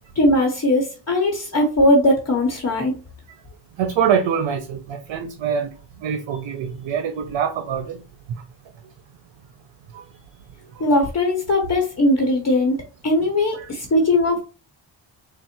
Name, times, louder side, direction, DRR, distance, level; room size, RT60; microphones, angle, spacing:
voice 1, 0.2-2.9 10.8-14.4, left 1 dB, 35° left, 0.9 m, -19 dB
voice 2, 3.8-5.7 6.0-8.0 9.9-10.0 10.8-10.9 13.5-13.7, right 7 dB, 85° right, 0.6 m, -24 dB
3.6 x 2.0 x 4.3 m
cardioid pair, 110°, 45 cm